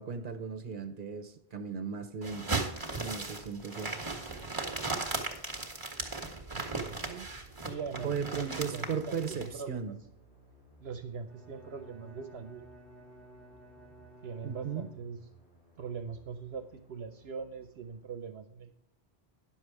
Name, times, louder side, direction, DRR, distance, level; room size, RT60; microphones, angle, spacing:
voice 1, 0.0-2.6 3.0-3.9 8.0-10.0 14.4-14.9, right 6 dB, 50° right, 1.2 m, -36 dB
sound 1, 2.2-9.5, right 3 dB, 20° right, 1.8 m, -37 dB
sound 2, 6.5-18.1, right 3 dB, 75° left, 4.2 m, -60 dB
voice 2, 6.5-7.3 7.6-10.0 10.8-12.6 14.2-15.2 15.8-18.7, right 6 dB, 75° right, 1.0 m, -42 dB
Bowed string instrument, 11.2-15.5, right 1 dB, ahead, 2.0 m, -55 dB
10.5 x 7.2 x 4.7 m
omnidirectional pair, 1.1 m